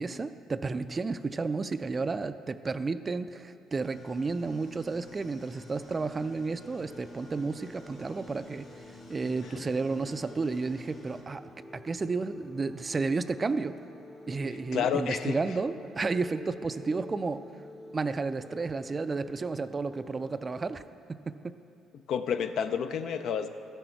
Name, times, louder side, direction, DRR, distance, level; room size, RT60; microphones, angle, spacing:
voice 1, 0.0-11.4 11.7-13.8 14.3-17.4 17.9-20.8 21.1-21.6, right 4 dB, 30° right, 12 dB, 0.3 m, -32 dB
sound 1, 3.8-11.2, left 2 dB, 55° left, 1.5 m, -51 dB
sound 2, 6.6-20.8, left 1 dB, 15° left, 0.6 m, -49 dB
voice 2, 14.7-15.4 22.1-23.5, left 7 dB, 70° left, 9 dB, 0.5 m, -29 dB
13.0 x 6.2 x 4.5 m, 2.8 s
cardioid pair, 85°, 0 cm